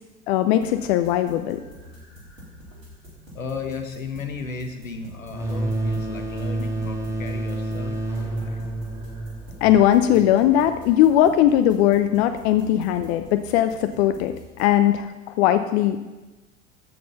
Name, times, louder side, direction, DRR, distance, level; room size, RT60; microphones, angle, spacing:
voice 1, 0.3-1.6 9.6-16.0, left 11 dB, 55° left, 9 dB, 0.7 m, -19 dB
sound 1, 0.6-14.7, equal, 85° right, 3.8 m, -46 dB
voice 2, 3.3-8.6, left 4 dB, 85° left, 6 dB, 1.4 m, -35 dB
sound 2, 5.3-10.7, right 1 dB, 5° right, 2.8 m, -29 dB
13.5 x 7.8 x 5.6 m, 1.1 s
figure-of-eight pair, 70°, 39 cm